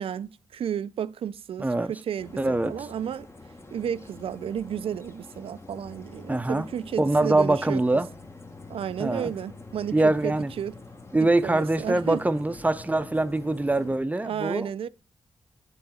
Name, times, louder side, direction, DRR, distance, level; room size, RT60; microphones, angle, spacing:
voice 1, 0.0-3.3 3.7-7.8 8.7-10.8 11.4-12.2 14.2-14.9, right 9 dB, 75° right, 0.4 m, -32 dB
voice 2, 1.6-1.9 2.4-2.7 6.3-6.7 7.0-8.1 9.0-9.3 9.9-10.5 11.1-14.7, right 2 dB, 15° right, 0.5 m, -24 dB
sound 1, 2.2-14.0, left 2 dB, 30° left, 0.9 m, -45 dB
8.0 x 3.8 x 4.2 m
cardioid pair, 65°, 10 cm